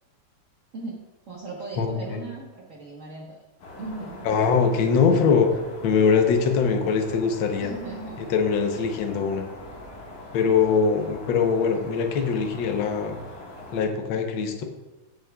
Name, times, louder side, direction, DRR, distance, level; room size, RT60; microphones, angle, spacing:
voice 1, 1.3-3.4 3.8-4.3 7.6-8.3, right 3 dB, 60° right, -4 dB, 0.8 m, -37 dB
voice 2, 1.8-2.2 4.2-5.5 5.8-7.7 8.2-9.4 10.3-13.2 13.7-14.6, left 5 dB, 70° left, 4 dB, 1.1 m, -22 dB
sound 1, 3.6-13.9, left 2 dB, 90° left, 3.2 m, -42 dB
16.5 x 6.5 x 2.3 m, 1.1 s
omnidirectional pair, 3.3 m